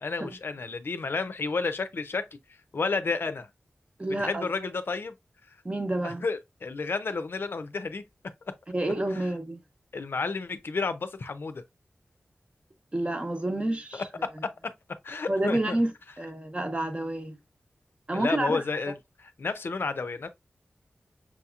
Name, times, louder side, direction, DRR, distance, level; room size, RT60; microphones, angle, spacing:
voice 1, 0.0-2.3 2.7-3.5 4.1-5.1 5.5-5.6 6.0-8.0 9.1-9.2 9.9-11.6 13.9-14.0 15.0-15.8 18.1-19.0 19.4-20.3, left 4 dB, 70° left, 0.5 m, -31 dB
voice 2, 4.0-4.5 5.6-6.2 8.7-9.6 12.9-14.1 15.3-15.9 16.2-17.4 18.1-18.6, right 1 dB, 30° right, 0.9 m, -29 dB
6.0 x 2.9 x 2.3 m
wide cardioid pair, 100°, 4 cm